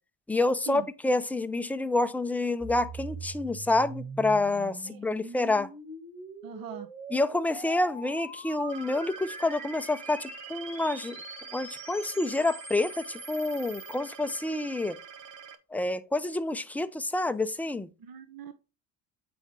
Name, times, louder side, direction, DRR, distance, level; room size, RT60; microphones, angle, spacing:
voice 1, 0.3-5.7 7.1-11.2 11.5-15.0 15.7-17.9, left 2 dB, 5° left, 0.5 m, -28 dB
sound 1, 2.6-14.0, right 2 dB, 15° right, 2.9 m, -43 dB
voice 2, 6.4-6.9 18.0-18.5, right 7 dB, 45° right, 0.9 m, -41 dB
sound 2, 8.7-15.6, right 7 dB, 65° right, 1.1 m, -47 dB
8.1 x 4.3 x 3.7 m
supercardioid pair, 75°, 47 cm